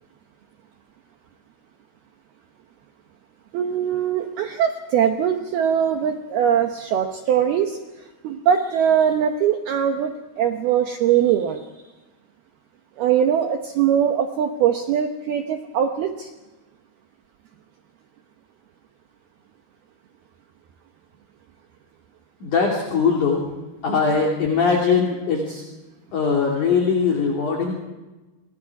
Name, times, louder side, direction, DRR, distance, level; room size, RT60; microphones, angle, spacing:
voice 1, 3.5-7.8 8.2-10.1 10.4-11.6 13.0-16.3, right 9 dB, 75° right, 5 dB, 2.3 m, -21 dB
voice 2, 22.4-23.4 23.8-25.6 26.1-27.8, left 5 dB, 45° left, 0 dB, 3.6 m, -21 dB
29.0 x 23.0 x 4.8 m, 1.1 s
omnidirectional pair, 5.8 m